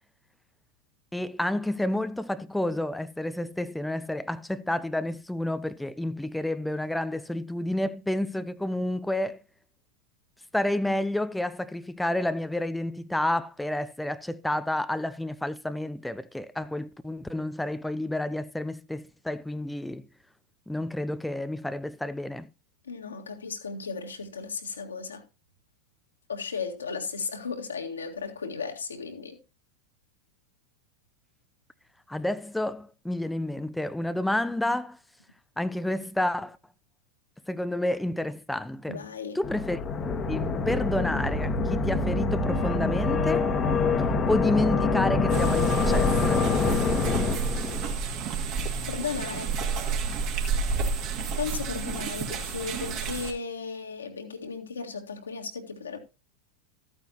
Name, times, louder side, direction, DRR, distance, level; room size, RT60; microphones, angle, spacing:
voice 1, 1.1-9.4 10.5-20.1 20.7-22.5 32.1-35.0 35.6-36.6 37.5-39.1 39.3-39.8 40.3-43.5 44.3-46.5, left 1 dB, 5° left, 0.5 m, -30 dB
voice 2, 22.8-25.2 26.3-29.4 38.9-39.4 48.9-49.6 51.4-56.0, left 5 dB, 70° left, 1.9 m, -35 dB
sound 1, 39.4-47.9, left 4 dB, 20° left, 1.3 m, -25 dB
sound 2, 45.3-53.3, right 4 dB, 40° right, 2.5 m, -30 dB
14.0 x 8.9 x 2.9 m
figure-of-eight pair, 90°, 0 cm